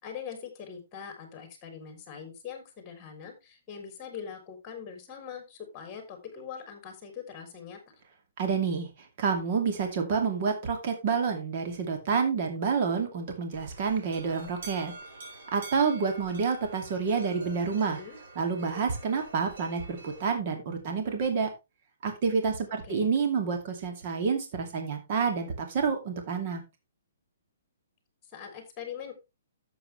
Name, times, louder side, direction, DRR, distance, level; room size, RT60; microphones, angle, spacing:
voice 1, 0.0-7.8 17.7-18.2 22.8-23.1 28.3-29.1, left 7 dB, 20° left, 5 dB, 3.5 m, -42 dB
voice 2, 8.4-8.9 9.2-14.9 15.5-18.0 18.4-21.5 22.0-26.6, right 5 dB, 40° right, 4 dB, 2.4 m, -28 dB
sound 1, 13.5-20.3, right 3 dB, 65° right, 4.9 m, -47 dB
11.5 x 7.8 x 3.3 m, 0.25 s
hypercardioid pair, 165°, 0 cm